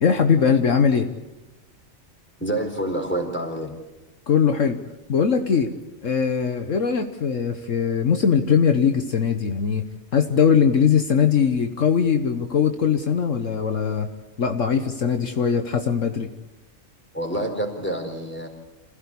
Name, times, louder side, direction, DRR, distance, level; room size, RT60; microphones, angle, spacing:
voice 1, 0.0-1.1 4.3-4.8 5.1-5.7 6.0-9.8 10.1-14.1 14.4-16.3, left 7 dB, 65° left, 6 dB, 1.5 m, -20 dB
voice 2, 2.4-3.8 17.1-18.5, right 1 dB, 10° left, 3 dB, 4.2 m, -27 dB
27.5 x 16.5 x 8.5 m, 1.1 s
omnidirectional pair, 1.4 m